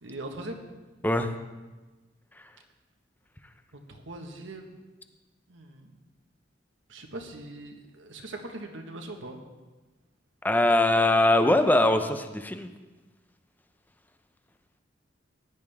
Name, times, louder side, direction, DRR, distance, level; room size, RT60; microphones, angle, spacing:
voice 1, 0.0-0.6 3.7-4.7 5.5-5.9 6.9-9.4, right 2 dB, 85° right, 3 dB, 1.5 m, -41 dB
voice 2, 10.4-12.7, left 1 dB, 10° left, 8 dB, 0.7 m, -22 dB
15.5 x 10.5 x 3.5 m, 1.2 s
head